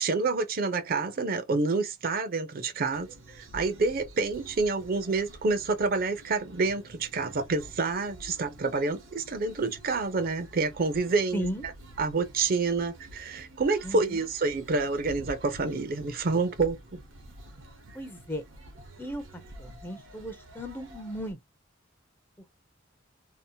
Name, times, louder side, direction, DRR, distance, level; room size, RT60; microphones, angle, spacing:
voice 1, 0.0-3.1 3.4-11.5 12.0-17.0, right 3 dB, 50° right, 0.5 m, -28 dB
sound 1, 2.9-21.3, right 1 dB, 90° right, 0.8 m, -49 dB
voice 2, 11.3-11.7 13.8-14.2 17.9-18.4 19.0-21.4, equal, 10° left, 0.5 m, -36 dB
2.7 x 2.0 x 2.7 m
head